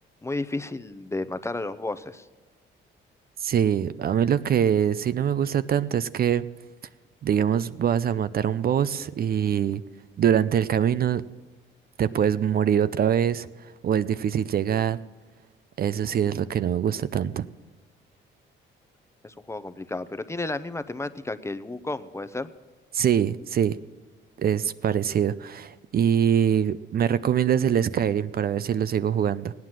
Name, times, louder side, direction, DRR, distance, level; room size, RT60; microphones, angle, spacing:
voice 1, 0.2-2.3 19.2-22.5, left 2 dB, 15° left, 12 dB, 0.7 m, -32 dB
voice 2, 3.4-6.4 7.2-9.8 10.2-11.2 12.0-15.0 15.8-17.4 22.9-23.8 24.4-29.5, right 9 dB, 50° right, 14 dB, 0.5 m, -24 dB
16.5 x 9.5 x 7.5 m, 1.3 s
cardioid pair, 90°, 20 cm